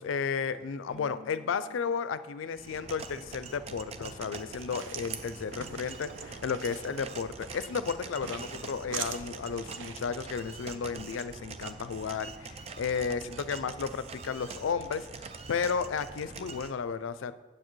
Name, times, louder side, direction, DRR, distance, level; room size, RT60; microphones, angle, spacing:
voice 1, 0.0-17.3, left 6 dB, 85° left, 14 dB, 0.4 m, -33 dB
Bowed string instrument, 0.9-4.1, left 5 dB, 5° left, 1.2 m, -56 dB
sound 1, 2.5-16.7, right 4 dB, 30° right, 0.3 m, -44 dB
sound 2, 4.4-10.1, right 6 dB, 80° right, 0.6 m, -43 dB
8.7 x 7.7 x 3.1 m, 1.2 s
head